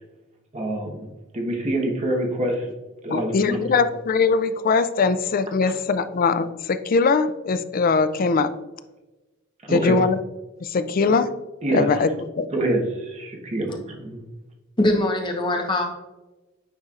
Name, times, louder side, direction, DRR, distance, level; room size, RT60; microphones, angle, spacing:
voice 1, 0.5-1.0 1.3-2.7 3.0-3.6 5.6-5.7 9.6-9.9 11.1-11.2 11.6-11.9 12.5-14.2, right 1 dB, 35° right, 1 dB, 1.1 m, -26 dB
voice 2, 3.1-8.5 9.7-10.2 10.6-11.3 11.7-12.1 12.4-12.5, left 4 dB, 45° left, 12 dB, 0.4 m, -21 dB
voice 3, 14.8-15.9, left 1 dB, 25° left, 2 dB, 1.0 m, -22 dB
9.2 x 4.3 x 2.4 m, 1.1 s
head